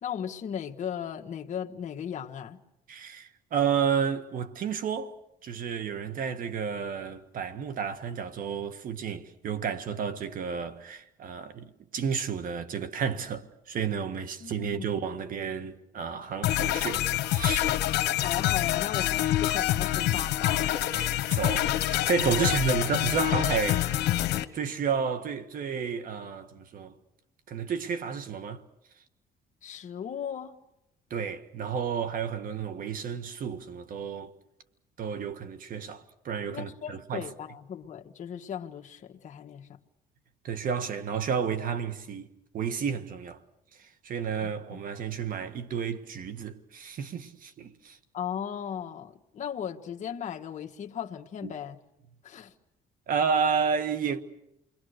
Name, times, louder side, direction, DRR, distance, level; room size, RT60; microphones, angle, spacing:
voice 1, 0.0-2.6 14.4-15.0 18.2-20.8 29.6-30.6 36.5-39.8 44.4-44.8 48.1-51.8 52.2-52.5, left 8 dB, 45° left, 1.5 m, -37 dB
voice 2, 2.9-5.1 5.4-17.7 20.9-24.1 24.5-26.9 27.5-28.6 31.1-34.3 35.0-37.3 40.4-42.3 42.5-43.4 43.8-48.0 51.4-51.5 53.1-54.2, right 6 dB, 55° right, 1.7 m, -31 dB
sound 1, 16.4-24.4, left 14 dB, 85° left, 1.2 m, -26 dB
28.5 x 22.5 x 6.6 m
cardioid pair, 110°, 17 cm